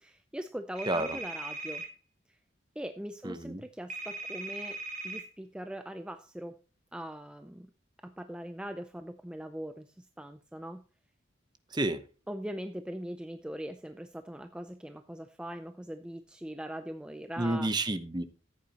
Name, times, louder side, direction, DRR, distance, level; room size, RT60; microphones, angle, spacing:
voice 1, 0.0-1.9 2.3-2.4 2.8-4.8 5.0-6.6 6.9-7.7 8.0-10.8 12.3-17.8, equal, 5° right, 0.5 m, -41 dB
sound 1, 0.7-1.9 3.9-5.2, right 2 dB, 40° right, 1.8 m, -39 dB
voice 2, 0.9-1.2 3.2-3.6 11.7-12.0 17.4-18.2, right 2 dB, 25° right, 0.8 m, -30 dB
14.5 x 8.5 x 2.9 m
head